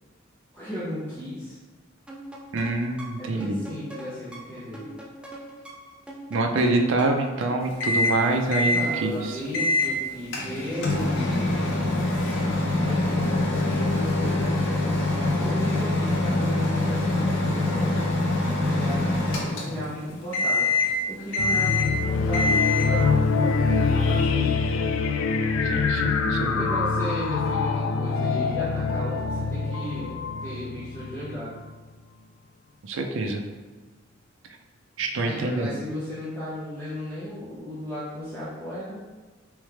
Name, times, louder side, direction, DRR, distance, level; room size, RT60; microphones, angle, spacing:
voice 1, 0.5-1.6 3.2-4.9 8.6-12.1 12.6-18.1 18.6-24.6 26.4-31.6 35.2-39.0, equal, 10° left, -12 dB, 0.9 m, -35 dB
sound 1, 2.1-7.4, right 1 dB, 5° right, 0.4 m, -43 dB
voice 2, 2.5-3.6 6.3-9.4 25.6-26.7 32.8-33.4 35.0-35.7, right 2 dB, 75° right, 3 dB, 0.5 m, -26 dB
Microwave oven, 7.8-8.2 8.5-8.8 9.5-9.9 10.3-20.0 20.3-21.0 21.3-22.0 22.3-23.0, left 2 dB, 65° left, 0.7 m, -24 dB
sound 2, 21.4-31.6, left 4 dB, 90° left, 0.3 m, -24 dB
3.5 x 3.2 x 3.3 m, 1.3 s
head